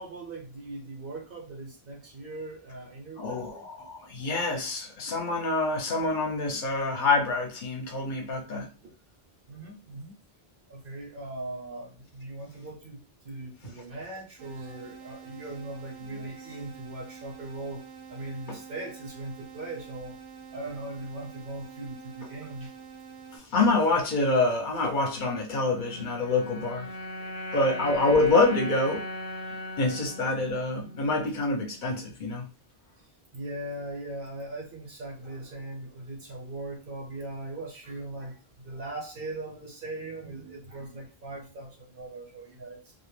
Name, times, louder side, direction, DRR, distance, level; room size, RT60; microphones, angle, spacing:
voice 1, 0.0-3.7 8.8-8.9 9.5-10.1 10.7-17.8 18.1-20.2 20.5-22.7 27.2-27.3 29.9-30.1 33.3-42.9, right 2 dB, 65° right, 0.8 m, -40 dB
voice 2, 3.2-8.7 18.5-18.6 23.3-26.9 27.5-29.0 29.8-32.5, left 3 dB, 55° left, 0.7 m, -26 dB
sound 1, 14.4-23.4, right 7 dB, 85° right, 0.9 m, -47 dB
sound 2, 25.6-32.0, left 1 dB, 10° left, 0.6 m, -38 dB
2.2 x 2.1 x 3.1 m
omnidirectional pair, 1.0 m